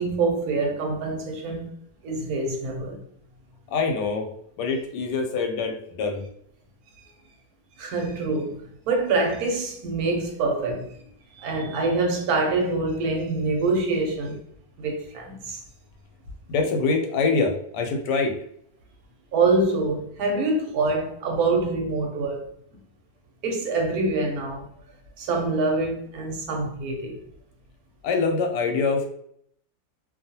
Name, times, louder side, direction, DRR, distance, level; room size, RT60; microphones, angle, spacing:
voice 1, 0.0-1.7 2.0-3.0 7.8-11.0 11.3-14.4 14.8-15.6 19.3-22.5 23.4-24.7 25.2-27.2, right 3 dB, 70° right, 1.1 m, -25 dB
voice 2, 3.7-4.3 4.6-6.2 16.5-18.3 28.0-29.0, left 4 dB, 90° left, 1.2 m, -24 dB
2.7 x 2.3 x 2.7 m
omnidirectional pair, 1.8 m